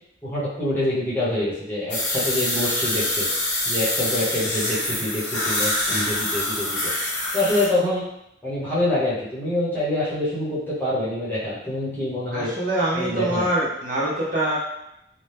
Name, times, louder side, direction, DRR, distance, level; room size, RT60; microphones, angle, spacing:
voice 1, 0.2-3.3 3.6-6.9 7.3-8.1 8.4-12.5 12.9-13.5, left 1 dB, 10° left, -9 dB, 0.9 m, -26 dB
sound 1, 1.9-7.7, left 1 dB, 75° left, 1.0 m, -25 dB
voice 2, 12.3-14.6, right 1 dB, 45° right, -7 dB, 0.8 m, -24 dB
2.8 x 2.2 x 3.3 m, 0.81 s
head